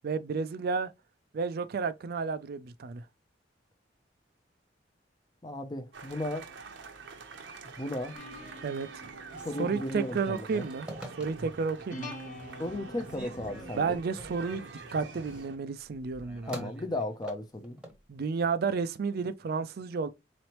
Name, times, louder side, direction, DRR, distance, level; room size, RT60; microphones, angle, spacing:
voice 1, 0.0-0.9 1.3-3.0 8.6-9.1 9.6-10.9 11.2-12.1 13.7-14.7 14.9-16.7 18.1-20.1, right 5 dB, 55° right, 0.4 m, -31 dB
voice 2, 5.4-6.4 7.8-8.2 9.4-10.7 12.6-14.0 16.5-17.8, left 1 dB, 25° left, 0.5 m, -35 dB
sound 1, 5.9-15.6, right 4 dB, 80° right, 0.8 m, -46 dB
sound 2, 8.2-13.9, equal, 45° left, 1.1 m, -47 dB
Telephone, 9.2-11.7 12.2-12.7 13.0-18.0, equal, 5° right, 0.9 m, -46 dB
4.0 x 3.1 x 2.9 m
head